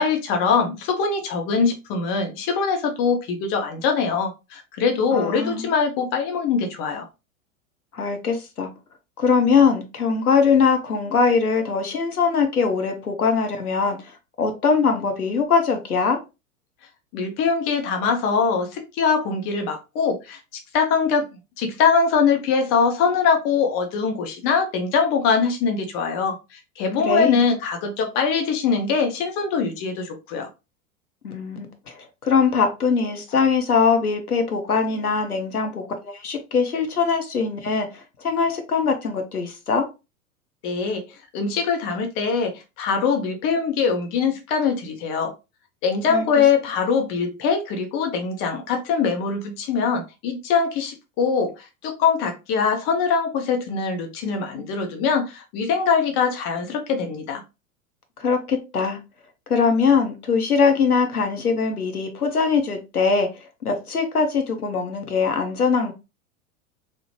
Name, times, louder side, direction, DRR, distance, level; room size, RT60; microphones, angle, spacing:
voice 1, 0.0-7.1 17.1-20.4 20.7-21.3 21.6-30.5 40.6-41.0 41.3-45.3 45.8-51.5 51.8-57.4, left 5 dB, 30° left, 0.6 m, -22 dB
voice 2, 5.1-5.7 7.9-8.7 9.2-16.2 27.1-27.4 31.2-39.9 46.1-46.2 58.2-59.0 59.5-63.3 63.6-65.9, left 5 dB, 85° left, 0.7 m, -22 dB
2.8 x 2.0 x 3.0 m
figure-of-eight pair, 90°, 43 cm